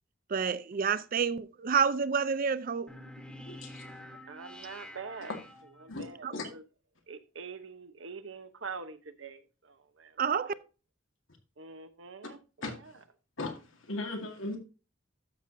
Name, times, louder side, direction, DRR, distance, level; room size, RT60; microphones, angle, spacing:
voice 1, 0.3-2.9 6.2-6.3 10.2-10.5, right 6 dB, 45° right, 0.5 m, -29 dB
sound 1, 2.9-6.2, left 1 dB, 5° left, 1.3 m, -48 dB
voice 2, 3.5-3.9 5.3-5.4 5.9-6.1 6.3-6.5 12.6-12.7 13.4-13.6 13.9-14.6, left 2 dB, 85° left, 2.1 m, -37 dB
voice 3, 4.3-5.3 5.8-6.6 7.1-10.2 10.5-10.6 11.6-12.9, right 5 dB, 75° right, 1.0 m, -45 dB
12.5 x 6.8 x 2.7 m
head